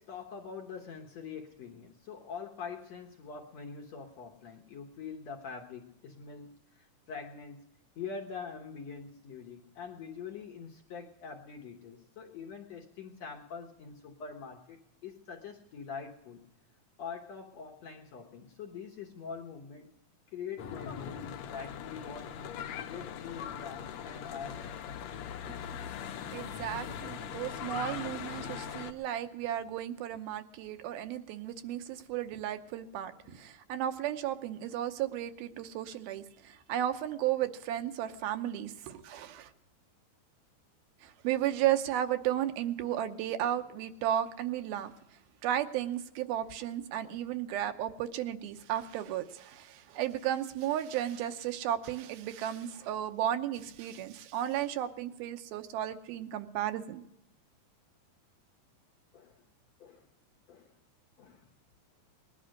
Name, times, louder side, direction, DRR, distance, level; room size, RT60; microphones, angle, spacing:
voice 1, 0.0-7.6 8.0-16.5 17.0-19.9 20.3-22.3 22.8-24.9 25.5-25.7 28.6-28.8 33.2-33.4 42.8-42.9 47.0-47.2 59.1-59.4 59.8-60.1 60.5-60.7 61.2-61.4, left 6 dB, 65° left, 2 dB, 1.7 m, -44 dB
Church bell / Traffic noise roadway noise, 20.6-28.9, left 8 dB, 85° left, 1.5 m, -40 dB
voice 2, 26.3-39.5 41.0-44.9 45.4-57.0, right 11 dB, 80° right, 8 dB, 2.6 m, -34 dB
19.5 x 11.0 x 6.4 m, 0.81 s
omnidirectional pair, 4.5 m